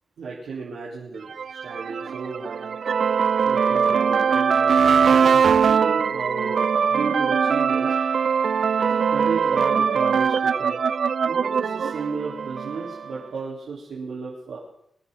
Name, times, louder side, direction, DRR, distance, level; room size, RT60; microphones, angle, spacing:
voice 1, 0.2-1.3 1.6-2.7 3.4-6.6 6.9-7.9 8.8-10.8 11.2-14.6, right 4 dB, 90° right, -7 dB, 3.7 m, -33 dB
sound 1, 1.3-13.1, right 6 dB, 60° right, 0.4 m, -21 dB
25.0 x 10.0 x 3.9 m, 0.76 s
wide cardioid pair, 105°, 0 cm